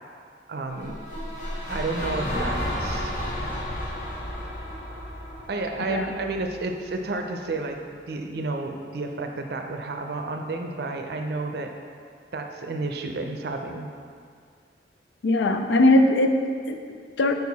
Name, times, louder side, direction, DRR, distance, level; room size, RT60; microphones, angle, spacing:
voice 1, 0.5-1.0 1.7-3.1 5.5-7.8 8.1-11.7 12.3-13.9, right 3 dB, 65° right, 4 dB, 0.5 m, -31 dB
sound 1, 0.7-6.9, equal, 45° left, 1.0 m, -32 dB
voice 2, 15.2-17.3, left 1 dB, 85° left, 6 dB, 0.4 m, -21 dB
5.0 x 4.7 x 4.0 m, 2.2 s
head